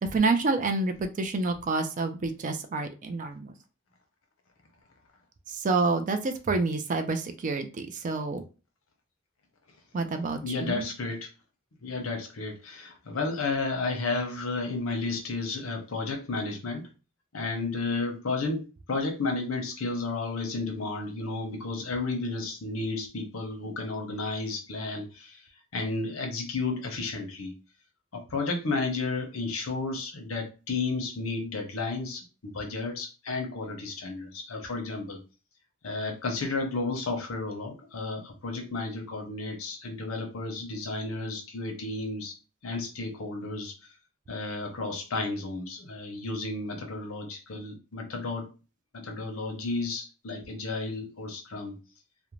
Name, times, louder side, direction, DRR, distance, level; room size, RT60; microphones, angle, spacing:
voice 1, 0.0-3.5 5.5-8.4 9.9-10.9, right 3 dB, 40° right, 7 dB, 0.3 m, -28 dB
voice 2, 10.4-11.3 11.8-16.9 17.3-25.4 25.7-27.5 28.1-35.2 35.8-42.4 42.6-43.7 44.3-48.5 48.9-51.8, left 3 dB, 85° left, 3 dB, 0.7 m, -32 dB
2.5 x 2.1 x 3.0 m, 0.32 s
head